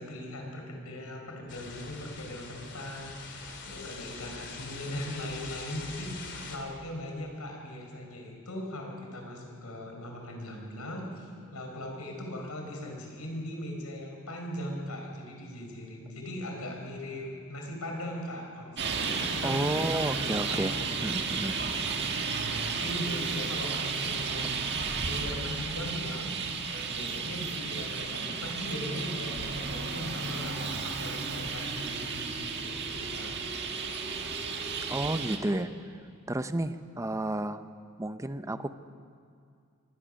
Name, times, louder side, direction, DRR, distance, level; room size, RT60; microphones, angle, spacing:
voice 1, 0.0-21.1 22.4-24.6 25.0-26.4 26.7-33.7, left 1 dB, 80° left, 2 dB, 4.7 m, -39 dB
sound 1, 1.5-6.6, left 4 dB, 55° left, 2.9 m, -43 dB
Traffic noise roadway noise, 18.8-35.4, right 5 dB, 50° right, 1.6 m, -33 dB
voice 2, 19.4-20.8 21.0-21.6 34.9-36.0 36.3-37.6 38.0-38.7, right 1 dB, 15° right, 11 dB, 0.7 m, -31 dB
sound 2, 23.5-35.2, left 1 dB, 15° left, 2.4 m, -47 dB
23.5 x 17.0 x 6.4 m, 2.3 s
head